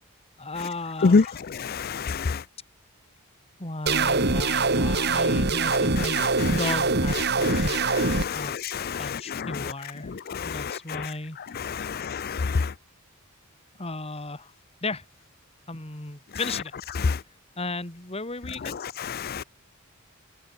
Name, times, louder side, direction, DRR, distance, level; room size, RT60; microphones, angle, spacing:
voice 1, 0.4-1.4 3.6-8.1 8.3-8.5 9.0-10.1 10.4-11.4 13.8-14.5 14.8-15.0 15.7-16.7 17.6-18.8, left 2 dB, 30° left, 2.7 m, -35 dB
voice 2, 1.9-2.4 8.0-8.4 10.4-10.5 11.8-12.3, left 4 dB, 45° left, 0.5 m, -23 dB
sound 1, 3.9-8.2, right 3 dB, 50° right, 2.9 m, -23 dB
head